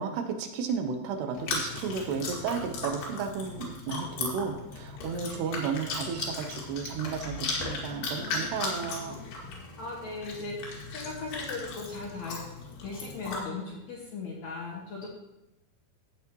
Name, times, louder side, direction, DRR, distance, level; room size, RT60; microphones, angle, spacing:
voice 1, 0.0-9.2, right 6 dB, 80° right, 5 dB, 3.0 m, -33 dB
Chewing mastication, 1.3-13.4, left 3 dB, 75° left, 4.1 m, -37 dB
voice 2, 5.2-5.5 9.8-10.6 10.9-12.4 12.8-15.1, left 3 dB, 55° left, -3 dB, 2.2 m, -38 dB
14.0 x 8.3 x 3.0 m, 0.94 s
omnidirectional pair, 4.8 m